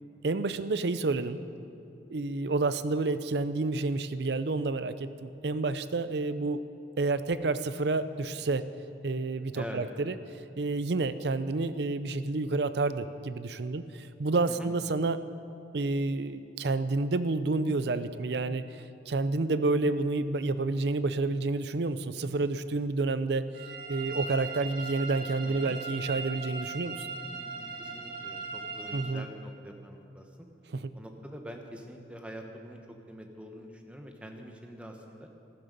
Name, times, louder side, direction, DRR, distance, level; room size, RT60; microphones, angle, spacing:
voice 1, 0.2-1.4 2.1-6.6 7.0-8.7 9.0-10.1 10.6-15.2 15.7-23.4 23.9-27.1 28.9-29.3 30.7-30.8, right 3 dB, 70° right, 13 dB, 0.5 m, -29 dB
sound 1, 23.5-29.0, right 4 dB, 50° right, 2.0 m, -39 dB
voice 2, 25.4-25.7 27.8-30.5 30.9-35.3, equal, 5° right, 3 dB, 1.0 m, -45 dB
14.5 x 12.5 x 5.3 m, 2.7 s
head